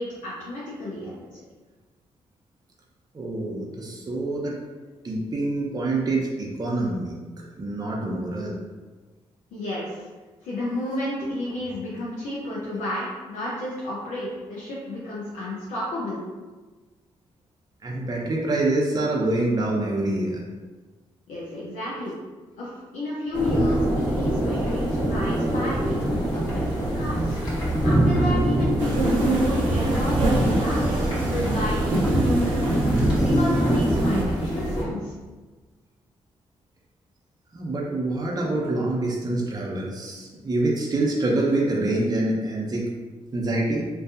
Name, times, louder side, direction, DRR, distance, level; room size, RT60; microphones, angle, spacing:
voice 1, 0.0-1.4 9.5-10.1 10.4-16.2 21.3-22.1 22.6-27.4 27.8-32.8 33.2-35.1, left 1 dB, 75° left, -6 dB, 0.5 m, -32 dB
voice 2, 3.1-4.6 5.0-8.6 17.8-20.5 37.5-42.9 43.3-43.9, right 2 dB, 30° right, -2 dB, 0.5 m, -26 dB
sound 1, 23.3-34.8, right 1 dB, 30° left, 1.2 m, -23 dB
sound 2, 28.8-34.2, right 2 dB, 90° right, 0.4 m, -27 dB
2.6 x 2.3 x 2.4 m, 1.3 s
hypercardioid pair, 45°, 13 cm